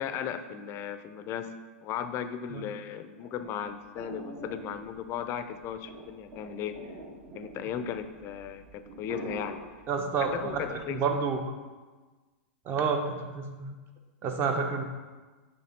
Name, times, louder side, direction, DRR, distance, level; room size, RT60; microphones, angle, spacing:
voice 1, 0.0-6.8 7.3-9.6 10.2-11.0, left 8 dB, 35° left, 10 dB, 0.4 m, -36 dB
sound 1, 3.2-11.0, right 2 dB, 55° right, 1.5 m, -45 dB
voice 2, 9.9-11.5 12.7-13.7 14.2-14.8, right 5 dB, 30° right, 4 dB, 0.8 m, -29 dB
6.4 x 3.5 x 4.4 m, 1.3 s
hypercardioid pair, 115°, 7 cm